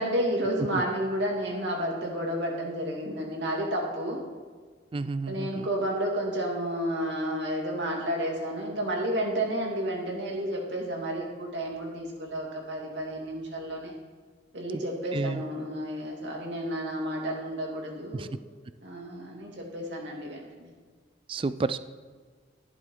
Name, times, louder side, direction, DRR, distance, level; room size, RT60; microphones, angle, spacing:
voice 1, 0.0-4.2 5.3-13.9 14.5-18.3 18.8-20.7, equal, 70° right, -1 dB, 2.5 m, -31 dB
voice 2, 4.9-5.7 15.1-15.4 18.1-18.3 21.3-21.8, right 3 dB, 30° right, 14 dB, 0.3 m, -30 dB
12.0 x 11.0 x 3.9 m, 1.5 s
head